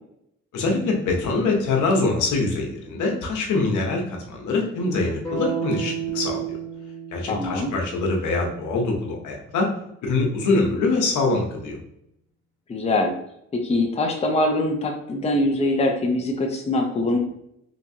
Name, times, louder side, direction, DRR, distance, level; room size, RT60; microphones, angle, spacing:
voice 1, 0.5-6.4 7.1-9.7 10.0-11.8, left 3 dB, 75° left, 1 dB, 0.9 m, -24 dB
sound 1, 5.2-9.3, right 7 dB, 5° left, 1.3 m, -33 dB
voice 2, 7.3-7.7 12.7-13.1 13.6-17.2, left 1 dB, 20° left, 3 dB, 0.6 m, -23 dB
3.3 x 2.9 x 2.7 m, 0.77 s
cardioid pair, 90°, 30 cm